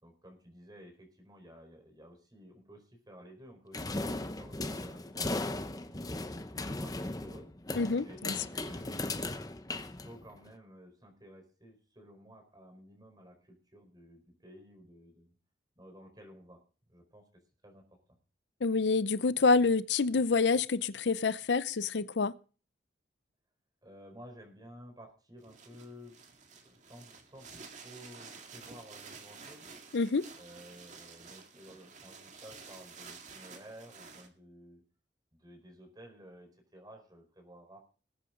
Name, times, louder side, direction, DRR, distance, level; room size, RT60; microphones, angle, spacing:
voice 1, 0.0-5.6 6.8-7.5 8.0-9.2 9.8-15.3 15.8-16.6 16.9-18.0 23.8-26.2 26.5-29.7 30.4-34.8 35.3-37.8, equal, 20° right, 4.6 m, -53 dB
sound 1, 3.7-10.5, left 2 dB, 20° left, 0.9 m, -37 dB
voice 2, 7.8-8.3 18.6-22.3 29.9-30.2, left 4 dB, 80° left, 0.6 m, -27 dB
sound 2, 25.4-34.3, right 5 dB, 40° right, 2.0 m, -51 dB
20.5 x 8.6 x 3.8 m
head